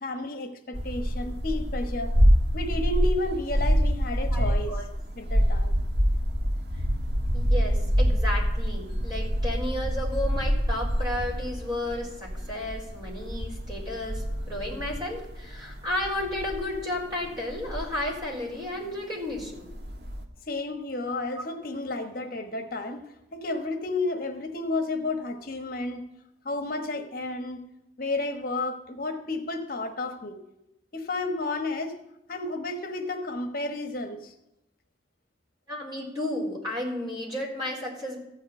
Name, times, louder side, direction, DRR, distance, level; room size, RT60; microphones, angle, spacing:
voice 1, 0.0-2.1 2.5-4.7 5.1-5.7 20.5-26.0 26.4-27.6 28.0-30.4 30.9-31.9 32.3-34.3, left 2 dB, 55° left, 6 dB, 1.2 m, -32 dB
sound 1, 0.7-18.5 18.9-19.0 19.3-20.2, equal, 65° right, 1.4 m, -26 dB
voice 2, 4.3-4.9 7.3-19.7 21.4-21.5 35.7-38.2, left 1 dB, 25° right, -3 dB, 4.1 m, -33 dB
14.5 x 4.9 x 9.3 m, 0.86 s
head